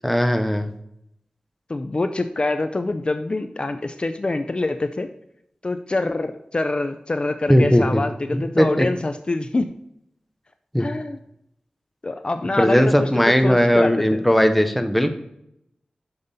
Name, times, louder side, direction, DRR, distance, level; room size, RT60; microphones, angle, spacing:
voice 1, 0.0-0.7 7.5-8.0 8.3-8.9 10.7-10.9 12.6-15.1, equal, 5° left, 7 dB, 0.7 m, -18 dB
voice 2, 1.7-5.1 5.6-9.7 10.8-11.2 12.0-14.2, left 2 dB, 40° left, 9 dB, 0.4 m, -25 dB
6.6 x 5.5 x 4.0 m, 0.78 s
wide cardioid pair, 55°, 3 cm